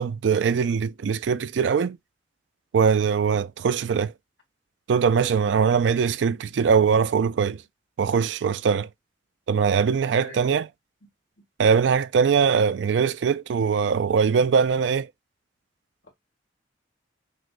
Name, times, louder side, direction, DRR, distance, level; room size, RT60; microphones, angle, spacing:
voice 1, 0.0-2.0 2.7-4.1 4.9-7.6 8.0-8.9 9.5-10.7 11.6-15.1, right 6 dB, 75° right, 0.4 m, -21 dB
voice 2, 10.1-10.6 11.4-11.5, left 1 dB, 85° left, 1.8 m, -42 dB
6.3 x 2.2 x 2.4 m
head